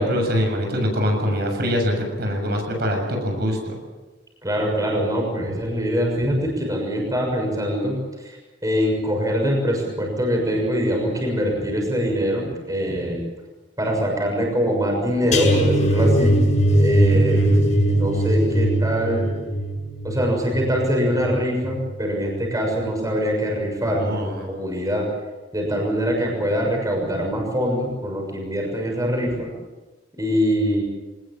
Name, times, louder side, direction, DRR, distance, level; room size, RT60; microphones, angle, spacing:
voice 1, 0.0-3.8 17.1-17.6 23.8-24.5, equal, 60° right, 2 dB, 7.0 m, -24 dB
voice 2, 4.4-8.4 8.6-13.2 13.8-16.4 16.8-17.6 17.9-19.3 20.0-25.1 25.5-29.5 30.2-30.8, equal, 20° right, 0 dB, 6.5 m, -23 dB
sound 1, 15.3-22.4 22.7-23.0 23.4-23.5, right 1 dB, 40° left, 7.4 m, -21 dB
24.5 x 20.0 x 7.6 m, 1.2 s
head